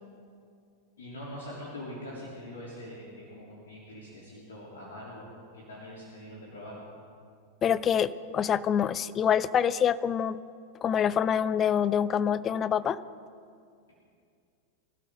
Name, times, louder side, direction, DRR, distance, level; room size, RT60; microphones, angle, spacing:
voice 1, 1.0-5.3 5.5-6.8, left 1 dB, 65° left, -6 dB, 3.4 m, -43 dB
voice 2, 7.6-10.4 10.8-13.0, left 8 dB, 25° left, 17 dB, 0.5 m, -26 dB
25.5 x 13.0 x 3.8 m, 2.3 s
figure-of-eight pair, 90°, 0 cm